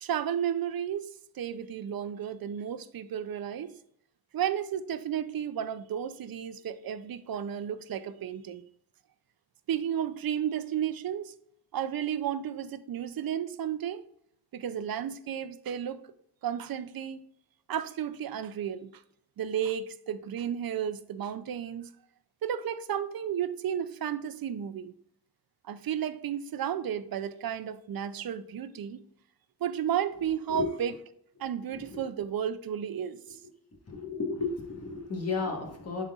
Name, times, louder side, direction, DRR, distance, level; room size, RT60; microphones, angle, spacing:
voice 1, 0.0-1.1 1.4-3.7 4.3-8.6 9.7-11.3 11.7-14.0 14.5-16.0 16.4-17.2 17.7-18.9 19.4-21.9 22.4-24.9 25.6-29.0 29.6-30.9 31.4-33.2, right 9 dB, 65° right, 0.5 m, -33 dB
voice 2, 31.7-32.0 33.3-33.4 33.9-36.0, left 4 dB, 40° left, 1.5 m, -33 dB
11.0 x 4.0 x 2.4 m
wide cardioid pair, 175°, 39 cm